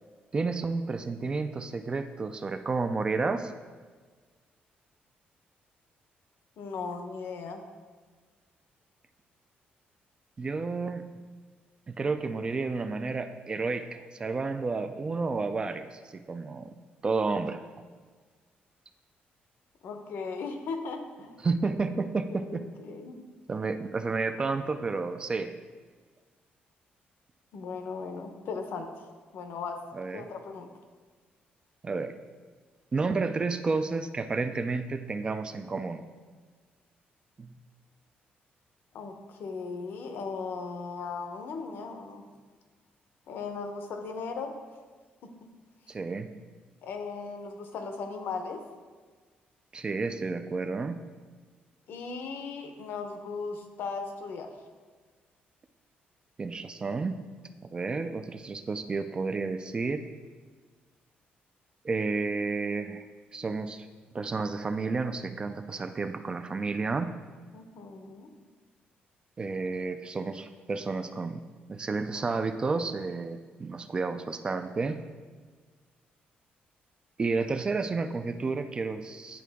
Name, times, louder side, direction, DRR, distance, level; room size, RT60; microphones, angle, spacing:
voice 1, 0.3-3.5 10.4-11.1 11.9-16.7 17.0-17.6 21.4-22.6 23.5-25.5 29.9-30.3 31.8-32.1 32.9-36.0 37.4-37.6 45.9-46.3 49.7-51.0 56.4-57.2 57.7-60.0 61.8-63.1 63.3-63.9 64.1-67.1 69.4-71.4 71.7-75.0 77.2-79.4, right 4 dB, 25° right, 8 dB, 0.3 m, -31 dB
voice 2, 6.6-7.6 19.8-21.3 22.3-23.2 27.5-28.9 29.3-29.8 30.1-30.7 38.9-42.3 43.3-44.5 46.8-48.6 51.9-54.5 67.5-68.3, left 4 dB, 70° left, 5 dB, 0.8 m, -37 dB
10.0 x 3.7 x 3.5 m, 1.5 s
cardioid pair, 135°, 4 cm